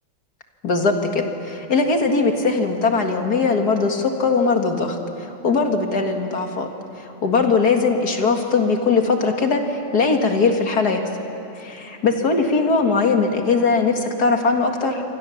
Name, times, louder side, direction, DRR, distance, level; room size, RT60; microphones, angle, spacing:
voice 1, 0.6-6.7 7.2-11.0 11.6-15.0, left 4 dB, 50° left, 4 dB, 2.3 m, -20 dB
29.0 x 24.5 x 7.1 m, 2.8 s
omnidirectional pair, 2.2 m